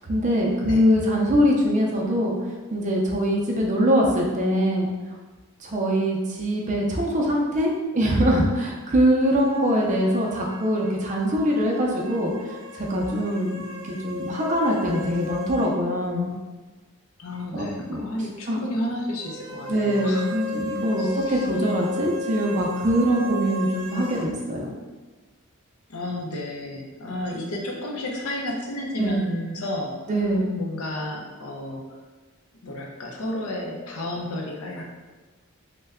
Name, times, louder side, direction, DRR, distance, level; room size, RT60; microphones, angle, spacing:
voice 1, 0.1-2.3 2.7-4.9 5.6-12.3 12.7-13.6 13.9-16.3 17.5-18.0 18.5-18.6 19.7-24.7 29.0-29.2 30.1-30.5, equal, 35° right, -1 dB, 0.4 m, -23 dB
sound 1, 9.2-15.7 16.0-16.1 19.2-24.3, left 1 dB, 65° right, 0.8 m, -35 dB
voice 2, 17.2-20.3 21.0-21.5 25.9-29.9 30.6-31.8 32.6-34.8, left 1 dB, 75° left, 0 dB, 0.6 m, -32 dB
3.2 x 2.2 x 3.5 m, 1.3 s
head